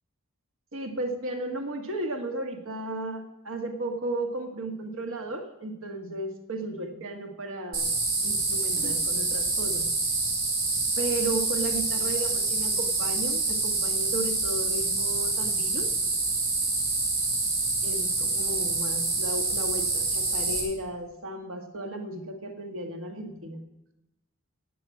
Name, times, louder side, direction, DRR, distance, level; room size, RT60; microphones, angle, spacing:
voice 1, 0.7-7.9 8.2-9.9 11.0-16.1 17.8-23.6, right 2 dB, 65° right, 4 dB, 1.7 m, -34 dB
sound 1, 7.7-20.6, right 3 dB, 45° right, 3.9 m, -27 dB
11.0 x 7.9 x 8.7 m, 0.89 s
head